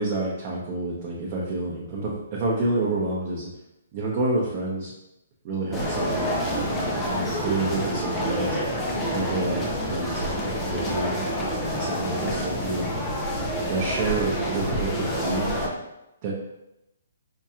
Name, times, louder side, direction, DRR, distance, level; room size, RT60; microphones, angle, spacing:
voice 1, 0.0-3.5 3.9-4.9 5.4-6.3 6.7-8.6 9.1-11.2 11.7-12.9 13.7-15.5 16.2-16.3, right 2 dB, 30° right, -5 dB, 0.7 m, -28 dB
sound 1, 5.7-15.7, equal, 10° left, 0.6 m, -27 dB
4.5 x 2.8 x 2.4 m, 0.89 s
hypercardioid pair, 155°, 0 cm